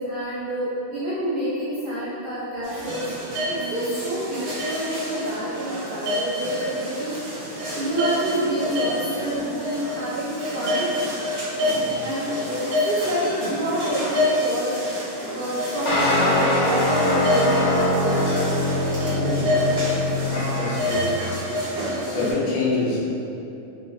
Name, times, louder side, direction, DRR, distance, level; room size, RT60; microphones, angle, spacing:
voice 1, 0.0-3.0 3.4-7.2 7.7-10.9 12.0-14.8 15.3-18.7, right 1 dB, 80° right, -9 dB, 0.4 m, -28 dB
sound 1, 2.6-22.3, left 1 dB, 45° right, 1.0 m, -27 dB
sound 2, 15.9-21.0, left 1 dB, 50° left, 0.9 m, -23 dB
voice 2, 19.2-19.5 20.2-21.4 22.1-23.0, left 3 dB, 90° left, -4 dB, 1.2 m, -27 dB
3.3 x 2.0 x 3.9 m, 2.9 s
omnidirectional pair, 1.6 m